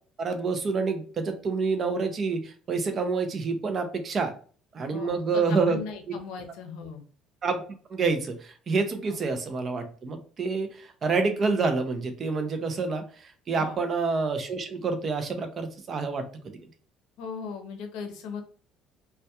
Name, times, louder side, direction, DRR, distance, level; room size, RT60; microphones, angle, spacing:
voice 1, 0.2-4.3 4.7-5.8 6.1-6.2 7.4-7.6 7.9-16.6, right 4 dB, 30° right, 7 dB, 0.3 m, -28 dB
voice 2, 4.9-7.0 13.6-13.8 17.2-18.4, left 5 dB, 80° left, 5 dB, 0.6 m, -38 dB
2.2 x 2.1 x 2.7 m, 0.41 s
cardioid pair, 165°, 0 cm